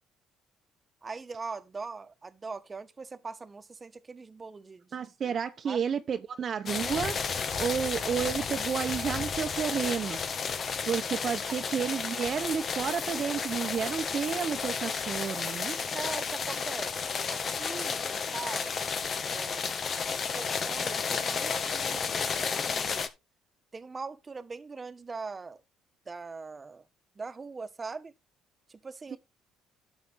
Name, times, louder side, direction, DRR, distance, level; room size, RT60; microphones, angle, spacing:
voice 1, 1.0-5.0 5.7-5.9 15.9-18.9 19.3-19.7 20.2-22.4 22.6-23.1 23.7-25.6 26.1-26.8 27.2-28.1 28.7-29.2, right 4 dB, 30° right, 1.3 m, -41 dB
voice 2, 4.9-7.2 7.6-10.2 10.8-15.8 29.1-29.2, right 7 dB, 50° right, 1.0 m, -31 dB
sound 1, 6.6-23.1, left 5 dB, 50° left, 1.7 m, -32 dB
11.5 x 7.0 x 4.0 m
supercardioid pair, 65°, 0 cm